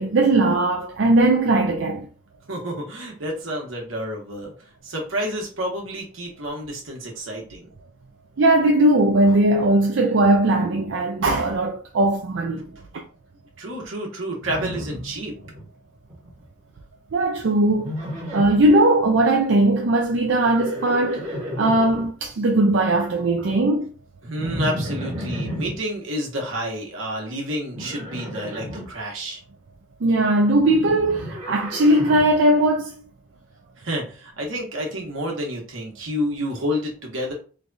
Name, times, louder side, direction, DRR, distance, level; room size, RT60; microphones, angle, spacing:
voice 1, 0.0-2.1 8.4-12.7 17.1-17.9 18.3-23.9 30.0-32.9, right 1 dB, 70° right, 0.5 m, -19 dB
voice 2, 2.5-4.5 4.8-7.7 12.7-12.9 13.6-15.3 24.2-29.4 33.8-37.3, equal, 85° right, 1.2 m, -29 dB
Livestock farm animals working animals, 14.4-15.7 15.9-16.5 17.8-18.7 20.3-22.1 24.4-25.8 27.7-28.9 30.6-32.4, equal, 35° right, 1.1 m, -32 dB
3.2 x 2.3 x 4.0 m
head